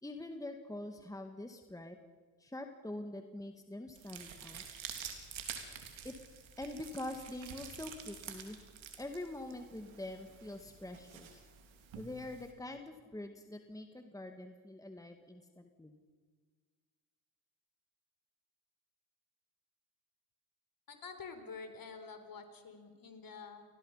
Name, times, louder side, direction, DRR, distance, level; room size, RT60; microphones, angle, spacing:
voice 1, 0.0-2.0 2.4-4.6 6.0-6.1 6.6-8.6 9.0-11.4 12.0-15.9, left 1 dB, 5° left, 6 dB, 2.1 m, -45 dB
sound 1, 3.9-12.5, right 7 dB, 65° right, 3.6 m, -49 dB
voice 2, 20.9-23.6, left 5 dB, 45° left, 8 dB, 4.2 m, -48 dB
29.0 x 19.5 x 5.8 m, 1.5 s
supercardioid pair, 60°, 50 cm